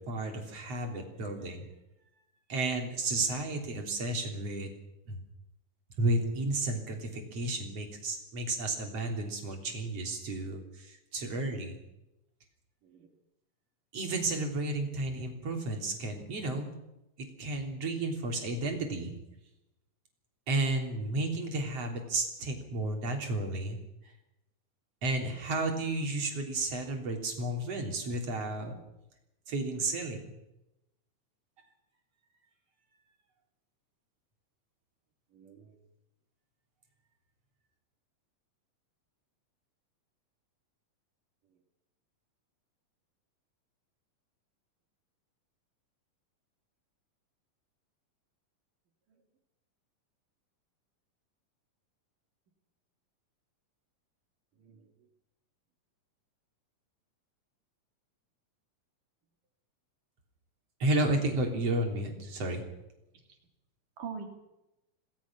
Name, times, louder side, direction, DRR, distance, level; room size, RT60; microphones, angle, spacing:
voice 1, 0.1-1.7 2.5-4.7 5.1-5.2 6.0-11.8 13.9-16.7 17.2-19.1 20.5-23.8 25.0-28.7 29.5-30.2 60.8-62.6, right 2 dB, 45° right, 3 dB, 4.1 m, -32 dB
voice 2, 12.8-13.1 29.7-29.9 35.3-35.8 49.1-49.2 54.5-55.1 63.1-63.4 64.0-64.3, right 6 dB, 65° right, 3 dB, 4.6 m, -46 dB
27.0 x 18.5 x 6.1 m, 0.92 s
omnidirectional pair, 4.0 m